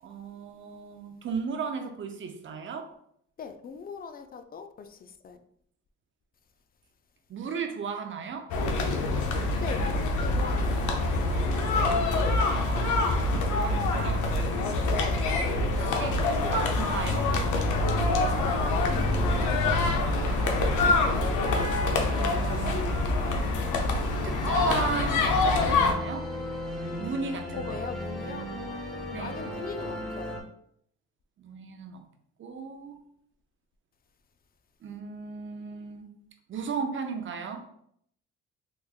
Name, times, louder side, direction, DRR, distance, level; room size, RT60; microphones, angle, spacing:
voice 1, 0.0-2.9 7.3-8.5 12.5-14.4 15.6-17.3 22.1-22.9 24.2-26.3 27.0-27.9 29.1-29.4 31.4-32.0 32.4-33.0 34.8-36.1 36.5-37.6, right 5 dB, 40° right, 0.6 m, -35 dB
voice 2, 3.4-5.4 9.6-10.9 17.9-19.9 27.5-30.3, left 6 dB, 30° left, 0.4 m, -41 dB
sound 1, 8.5-25.9, left 2 dB, 80° left, 0.6 m, -25 dB
sound 2, 18.8-30.4, left 1 dB, ahead, 0.8 m, -37 dB
3.4 x 3.0 x 2.4 m
cardioid pair, 90°, 30 cm